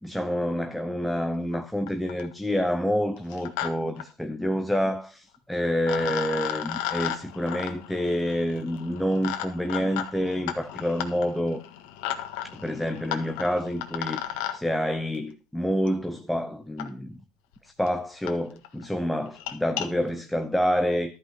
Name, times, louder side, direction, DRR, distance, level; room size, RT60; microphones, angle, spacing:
voice 1, 0.0-11.6 12.5-17.2 17.6-21.2, equal, ahead, 0.7 m, -28 dB
sound 1, 1.5-1.6 1.9-2.3 3.2-3.7 4.0-4.1 5.3-5.4 5.8-14.6 15.9-16.0 16.8-16.9 17.5-17.6 17.9-18.0 18.3-18.4 18.6-18.8 19.3-19.9, left 11 dB, 80° left, 1.6 m, -34 dB
13.0 x 5.5 x 5.9 m
cardioid pair, 135°, 0 cm